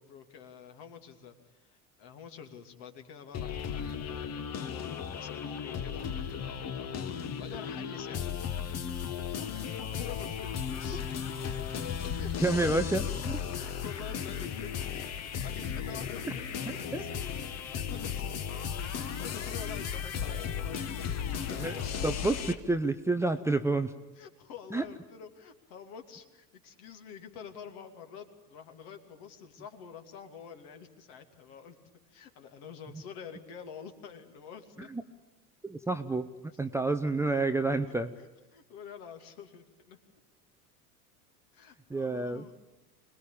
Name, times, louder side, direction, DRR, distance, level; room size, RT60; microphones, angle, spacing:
voice 1, 0.0-4.7 5.0-8.2 9.2-11.0 12.2-12.8 13.5-20.9 24.2-31.8 32.1-34.9 38.2-38.3 38.5-40.0 41.5-42.5, left 7 dB, 55° left, 6 dB, 2.8 m, -48 dB
sound 1, 3.3-22.6, left 8 dB, 35° left, 1.6 m, -35 dB
voice 2, 12.4-13.4 16.7-17.0 21.5-23.9 24.7-24.8 34.9-35.0 35.6-38.1 41.9-42.4, right 2 dB, 5° right, 8 dB, 0.8 m, -29 dB
25.0 x 20.0 x 8.8 m, 1.0 s
figure-of-eight pair, 75°, 45 cm